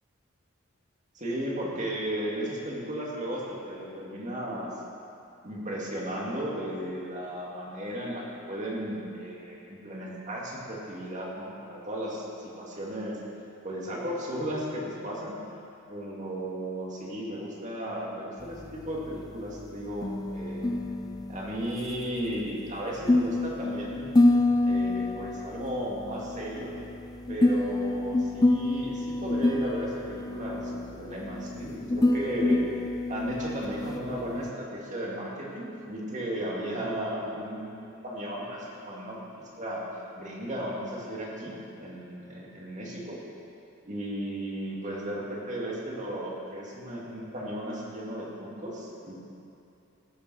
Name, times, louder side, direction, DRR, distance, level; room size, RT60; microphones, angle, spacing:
voice 1, 1.1-4.7 5.4-13.2 13.6-15.4 15.9-20.7 21.3-24.2 24.6-26.7 27.3-32.7 33.1-39.9 40.1-43.2 43.9-49.1, right 1 dB, 35° right, -4 dB, 2.3 m, -35 dB
sound 1, 18.4-34.5, left 2 dB, 20° left, 0.3 m, -27 dB
16.0 x 7.0 x 6.3 m, 2.7 s
head